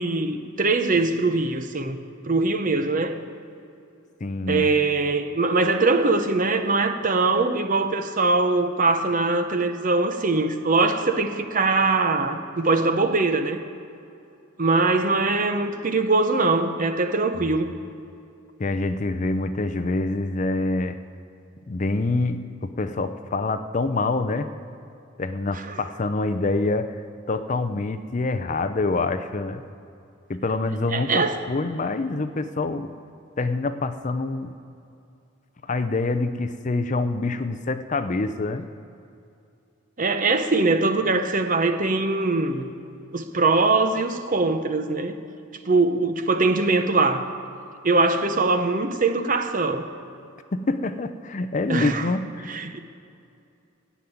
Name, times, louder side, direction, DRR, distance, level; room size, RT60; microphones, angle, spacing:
voice 1, 0.0-2.0 2.2-3.2 4.5-13.6 14.6-17.7 25.7-25.8 30.9-31.4 40.0-42.7 43.1-45.2 45.7-47.3 47.8-49.8 51.7-52.1 52.5-52.8, right 3 dB, 40° right, 0.8 m, -22 dB
voice 2, 4.2-4.7 17.3-17.6 18.6-21.0 21.7-24.5 25.2-27.0 27.3-29.6 30.3-32.9 33.4-34.6 35.6-38.7 50.5-52.5, left 3 dB, 35° left, 0.5 m, -26 dB
14.0 x 7.3 x 9.3 m
head